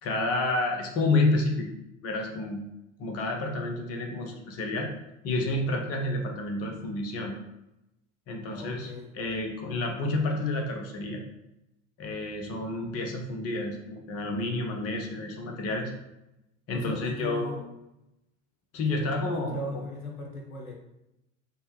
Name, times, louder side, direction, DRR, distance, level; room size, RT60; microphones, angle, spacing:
voice 1, 0.0-1.7 2.0-2.6 3.0-4.9 5.2-7.3 8.3-11.2 12.0-15.9 16.7-17.6 18.7-19.8, left 2 dB, 35° left, 2 dB, 0.8 m, -29 dB
voice 2, 8.5-9.1 16.7-17.6 18.9-20.7, left 2 dB, 90° left, 0 dB, 0.6 m, -38 dB
5.4 x 2.1 x 3.0 m, 0.90 s
figure-of-eight pair, 70°, 41 cm